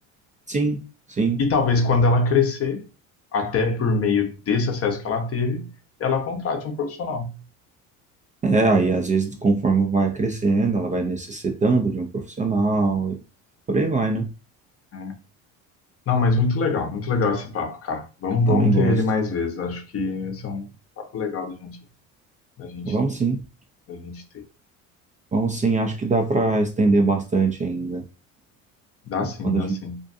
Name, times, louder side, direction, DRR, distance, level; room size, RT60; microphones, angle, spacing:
voice 1, 0.5-0.8 1.1-1.4 8.4-13.2 13.7-14.3 18.5-19.0 22.8-23.4 25.3-28.0 29.2-29.8, right 3 dB, 20° right, 0.4 m, -22 dB
voice 2, 1.4-2.8 3.3-5.7 6.0-7.3 14.9-15.1 16.1-20.7 21.0-21.8 22.6-23.0 23.9-24.4 29.1-30.0, left 4 dB, 40° left, 0.7 m, -24 dB
2.5 x 2.2 x 2.5 m
supercardioid pair, 80°, 38 cm